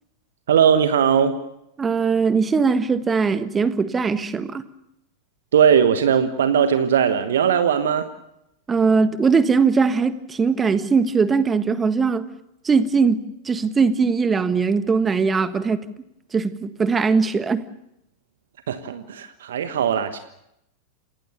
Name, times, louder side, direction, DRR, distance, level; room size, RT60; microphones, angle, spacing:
voice 1, 0.5-1.4 5.5-8.1 18.7-20.2, right 8 dB, 60° right, 10 dB, 1.3 m, -19 dB
voice 2, 1.8-4.6 8.7-12.2 12.6-15.8 16.3-17.6, right 5 dB, 15° right, 12 dB, 1.5 m, -20 dB
28.0 x 19.5 x 6.9 m, 0.80 s
figure-of-eight pair, 90°, 0 cm